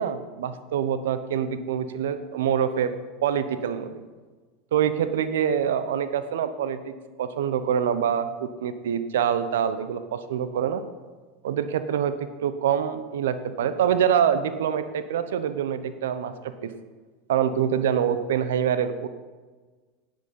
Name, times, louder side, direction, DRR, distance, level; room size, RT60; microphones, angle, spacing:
voice 1, 0.0-2.9 3.2-3.9 4.7-6.9 7.2-10.8 11.4-12.1 12.4-16.7 17.3-19.1, right 8 dB, 80° right, 11 dB, 0.8 m, -25 dB
10.5 x 8.3 x 5.5 m, 1.4 s
hypercardioid pair, 95°, 0 cm